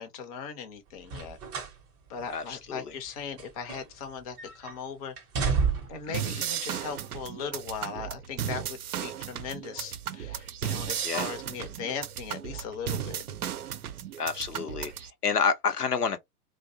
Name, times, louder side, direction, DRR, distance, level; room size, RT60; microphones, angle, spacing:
voice 1, 0.0-1.4 2.1-5.1 5.9-13.2, left 6 dB, 25° left, 0.5 m, -38 dB
sound 1, 1.0-1.8 2.2-2.3 3.1-4.1 4.4-4.7 5.2-6.1 7.0-7.1, right 5 dB, 20° right, 0.5 m, -30 dB
voice 2, 2.3-2.9 6.1-6.4 11.0-11.3 14.2-16.2, left 6 dB, 90° left, 0.7 m, -29 dB
sound 2, 6.1-15.1, right 9 dB, 75° right, 0.5 m, -35 dB
2.5 x 2.0 x 2.6 m
figure-of-eight pair, 110°, 45 cm